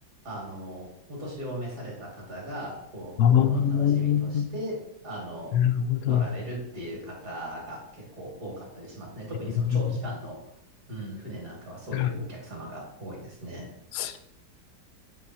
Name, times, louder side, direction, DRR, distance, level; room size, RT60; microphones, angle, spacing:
voice 1, 0.2-5.6 6.0-10.4 10.9-13.7, equal, 45° right, -3 dB, 2.5 m, -38 dB
voice 2, 3.2-4.5 5.5-6.3 9.7-9.8 11.9-12.1 13.9-14.2, left 9 dB, 70° left, 10 dB, 1.0 m, -23 dB
8.3 x 3.6 x 4.2 m, 0.78 s
omnidirectional pair, 2.1 m